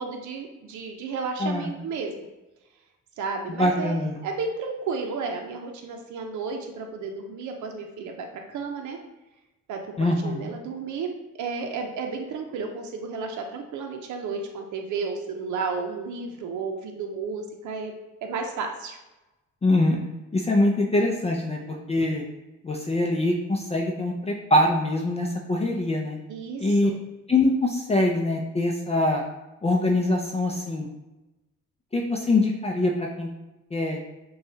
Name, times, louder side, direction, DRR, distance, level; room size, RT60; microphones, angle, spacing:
voice 1, 0.0-2.3 3.2-9.0 9.7-11.1 11.4-17.9 18.2-19.0 26.3-26.9, right 4 dB, 75° right, 3 dB, 0.7 m, -32 dB
voice 2, 1.4-1.7 3.6-4.2 10.0-10.5 19.6-20.0 20.3-21.6 21.9-22.2 22.6-26.2 26.6-26.9 27.3-29.2 29.6-30.9 31.9-33.3 33.7-34.0, left 2 dB, 20° left, 1 dB, 0.5 m, -23 dB
6.3 x 2.4 x 2.7 m, 1.0 s
cardioid pair, 90°, 30 cm